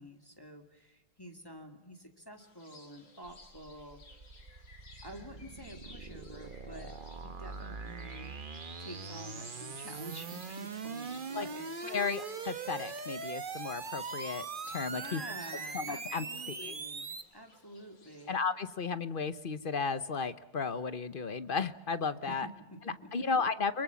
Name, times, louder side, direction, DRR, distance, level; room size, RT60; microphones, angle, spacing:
voice 1, 0.0-4.0 5.0-8.3 8.8-12.0 14.9-18.3 22.3-23.3, equal, 10° left, 4 dB, 2.3 m, -49 dB
sound 1, 2.4-18.3, left 3 dB, 80° left, 3.7 m, -59 dB
sound 2, 3.3-17.2, right 4 dB, 35° right, 1.2 m, -42 dB
voice 2, 11.9-15.2 15.7-16.8 18.3-22.5 23.1-23.8, left 5 dB, 40° left, 13 dB, 0.8 m, -34 dB
25.0 x 23.0 x 7.1 m, 1.0 s
omnidirectional pair, 1.9 m